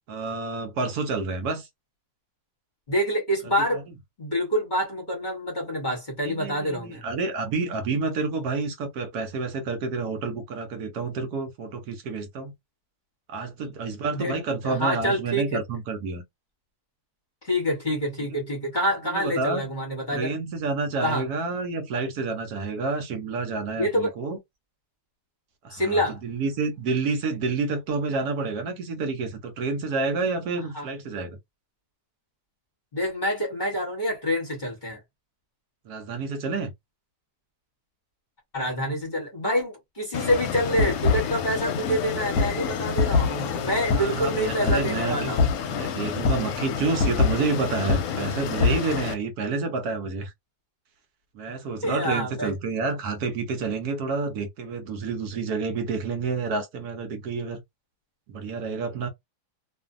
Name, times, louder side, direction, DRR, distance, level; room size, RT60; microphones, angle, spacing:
voice 1, 0.1-1.7 6.2-12.5 13.3-16.2 18.3-18.4 19.1-19.7 20.1-24.4 25.6-31.4 35.9-36.7 43.9-45.2 45.6-50.3 51.3-57.6 58.3-59.1, right 4 dB, 70° right, 1.1 m, -29 dB
voice 2, 2.9-3.8 4.2-7.0 14.1-14.3 14.6-15.6 17.4-20.3 21.0-21.2 23.8-24.1 25.7-26.2 30.7-30.9 32.9-35.0 38.5-45.5 51.8-52.5, equal, 35° left, 1.0 m, -27 dB
sound 1, 40.1-49.1, left 5 dB, 70° left, 1.0 m, -26 dB
2.5 x 2.5 x 2.4 m
omnidirectional pair, 1.8 m